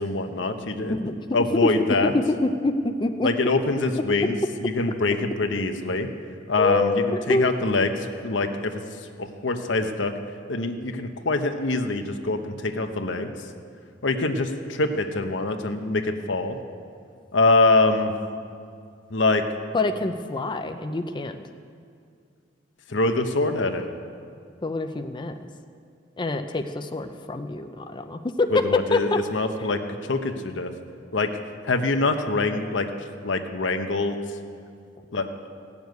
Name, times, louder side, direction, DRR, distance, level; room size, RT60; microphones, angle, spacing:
voice 1, 0.0-0.9 1.3-2.1 3.2-4.3 4.6-6.1 6.5-7.9 8.2-8.8 9.2-10.1 10.5-13.3 14.0-16.6 17.3-18.1 19.1-19.5 22.9-23.9 28.5-29.8 30.1-30.7 31.1-31.3 31.6-32.9 33.2-34.2 35.1-35.3, left 3 dB, 85° left, 6 dB, 1.0 m, -24 dB
voice 2, 0.9-1.7 2.1-3.3 6.6-7.6 19.7-21.3 24.6-25.5 26.2-28.6 28.9-29.2, left 2 dB, 25° left, 6 dB, 0.6 m, -26 dB
16.0 x 7.1 x 9.4 m, 2.3 s
head